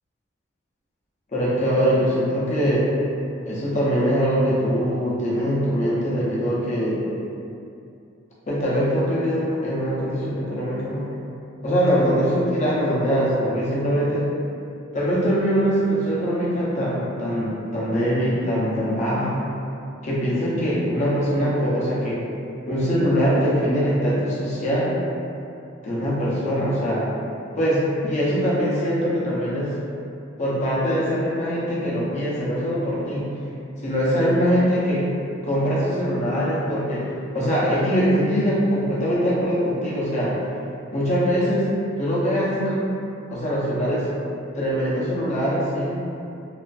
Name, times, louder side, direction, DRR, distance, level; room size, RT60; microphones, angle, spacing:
voice 1, 1.3-2.9 3.5-7.0 8.5-11.1 11.6-14.3 14.9-19.4 20.0-22.2 22.7-24.9 25.8-27.1 27.6-29.7 30.4-33.3 33.8-35.1 35.4-37.1 37.3-40.3 40.9-41.7 42.0-42.8 43.3-44.1 44.5-46.0, equal, 35° left, -7 dB, 0.5 m, -22 dB
2.4 x 2.3 x 2.2 m, 2.6 s
head